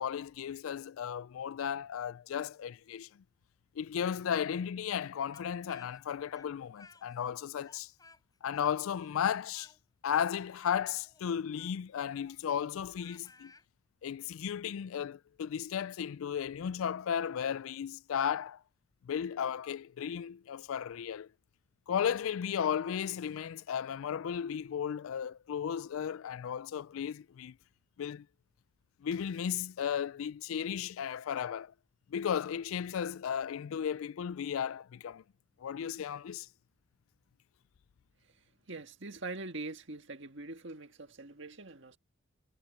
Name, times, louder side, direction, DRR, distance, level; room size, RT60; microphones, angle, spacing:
voice 1, 0.0-3.1 3.8-7.9 8.4-9.7 10.0-13.5 14.0-18.6 19.0-21.3 21.9-27.5 28.0-28.3 29.0-31.7 32.1-35.2 35.6-36.5, left 8 dB, 80° left, 0.3 m, -35 dB
Speech, 5.3-7.4 7.6-13.7, left 3 dB, 20° left, 5.1 m, -58 dB
voice 2, 38.7-42.0, right 2 dB, 60° right, 1.7 m, -43 dB
head